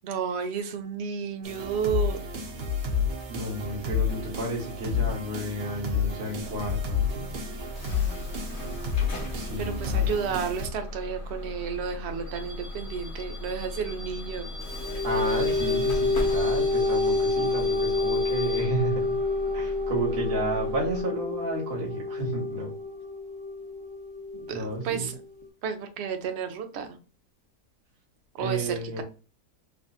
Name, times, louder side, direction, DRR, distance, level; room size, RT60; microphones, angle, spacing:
voice 1, 0.0-2.2 9.6-14.5 24.3-25.2 25.6-27.0 28.4-29.0, right 7 dB, 65° right, 7 dB, 0.7 m, -32 dB
sound 1, 1.4-10.7, left 5 dB, 85° right, 1.4 m, -30 dB
voice 2, 3.3-7.3 9.3-10.1 15.0-19.1 19.5-22.7 24.5-25.1 28.4-29.0, right 1 dB, 35° right, -3 dB, 1.3 m, -32 dB
Bus / Alarm, 6.4-21.0, left 2 dB, 50° left, 1.1 m, -37 dB
sound 2, 14.5-25.5, left 3 dB, 15° left, 1.0 m, -28 dB
3.4 x 2.6 x 2.4 m, 0.34 s
omnidirectional pair, 1.8 m